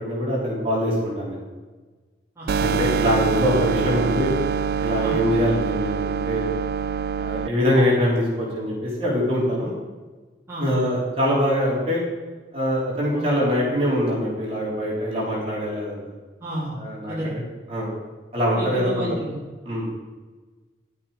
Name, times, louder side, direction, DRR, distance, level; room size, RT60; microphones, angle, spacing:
voice 1, 0.0-1.4 2.6-4.3 4.8-6.4 7.2-9.8 10.6-12.0 12.5-16.0 16.7-17.3 17.7-17.9 18.3-19.1 19.6-19.9, equal, 35° right, -6 dB, 3.9 m, -23 dB
sound 1, 2.5-7.5, right 6 dB, 60° right, 0.3 m, -25 dB
voice 2, 16.4-16.8 17.1-17.4 18.5-19.4, right 1 dB, 15° right, -10 dB, 3.4 m, -31 dB
11.5 x 8.5 x 5.2 m, 1.3 s
head